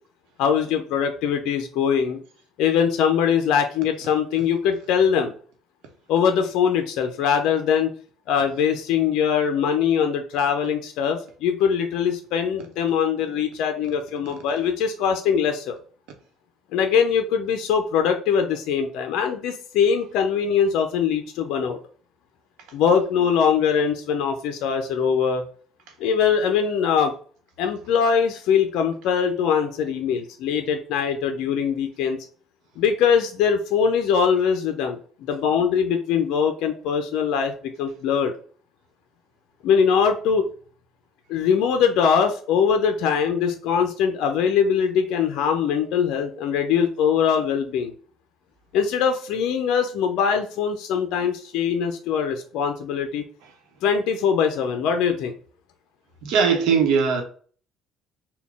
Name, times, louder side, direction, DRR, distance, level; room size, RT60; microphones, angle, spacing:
voice 1, 0.4-2.2 2.6-5.3 6.1-7.9 8.3-15.8 16.7-21.8 22.7-25.4 26.0-27.1 27.6-32.2 32.8-38.3 39.6-40.4 41.3-47.9 48.7-53.2 53.8-55.3, left 7 dB, 75° left, 0.4 m, -22 dB
voice 2, 56.2-57.2, right 6 dB, 80° right, 1.0 m, -19 dB
3.8 x 2.2 x 3.4 m
cardioid pair, 100°, 0 cm